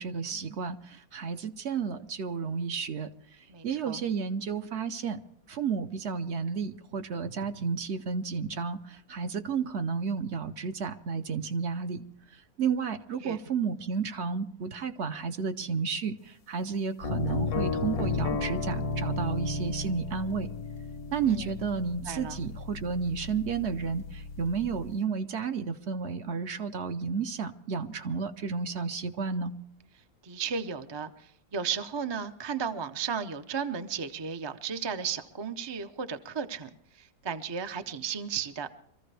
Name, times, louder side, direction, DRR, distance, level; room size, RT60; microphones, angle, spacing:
voice 1, 0.0-5.2 5.5-20.5 21.1-29.5, right 5 dB, 55° right, 0.9 m, -32 dB
voice 2, 3.5-4.0 13.2-13.4 21.3-21.5 22.1-22.4 30.2-36.7 37.0-38.7, right 6 dB, 35° right, 0.4 m, -34 dB
sound 1, 17.0-24.9, left 3 dB, 85° left, 1.5 m, -34 dB
24.5 x 14.5 x 3.4 m
omnidirectional pair, 1.5 m